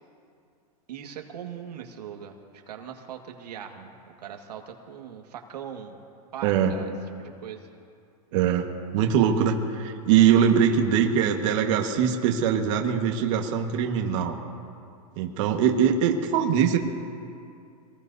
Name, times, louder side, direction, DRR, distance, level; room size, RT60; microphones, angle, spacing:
voice 1, 0.9-6.0 6.3-6.9 7.2-7.7 10.6-11.0, right 8 dB, 85° right, 3 dB, 1.8 m, -40 dB
voice 2, 6.4-6.7 8.3-8.7 8.9-14.4 15.2-16.8, right 8 dB, 50° right, 2 dB, 1.5 m, -22 dB
26.0 x 19.0 x 2.7 m, 2.4 s
supercardioid pair, 145°, 20 cm